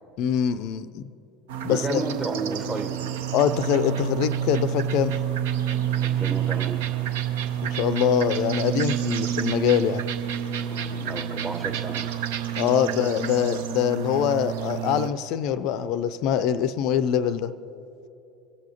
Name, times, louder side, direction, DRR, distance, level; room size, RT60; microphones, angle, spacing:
voice 1, 0.2-1.0 1.6-2.0 3.3-5.1 7.6-10.0 12.5-17.5, left 9 dB, 50° left, 15 dB, 0.4 m, -24 dB
sound 1, 1.5-15.1, right 10 dB, 65° right, 0.6 m, -29 dB
voice 2, 1.7-3.1 6.0-6.8 9.3-9.4 10.7-12.1 13.7-13.8, right 3 dB, 25° right, 4 dB, 1.2 m, -32 dB
24.0 x 8.2 x 2.9 m, 2.7 s
figure-of-eight pair, 70°, 0 cm